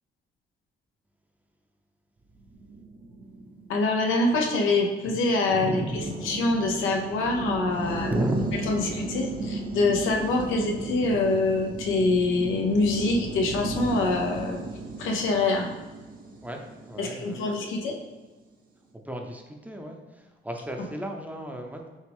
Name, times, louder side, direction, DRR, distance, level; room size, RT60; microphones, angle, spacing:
sound 1, 2.4-17.8, right 2 dB, 45° right, 0.8 m, -36 dB
voice 1, 3.7-8.1 8.7-14.6 15.0-15.7 17.0-18.0, left 2 dB, 90° left, 1 dB, 0.8 m, -25 dB
voice 2, 5.5-6.2 8.0-8.5 16.4-17.9 19.0-21.8, right 1 dB, 10° right, 2 dB, 0.6 m, -34 dB
6.4 x 2.4 x 3.5 m, 1.2 s
cardioid pair, 90°, 20 cm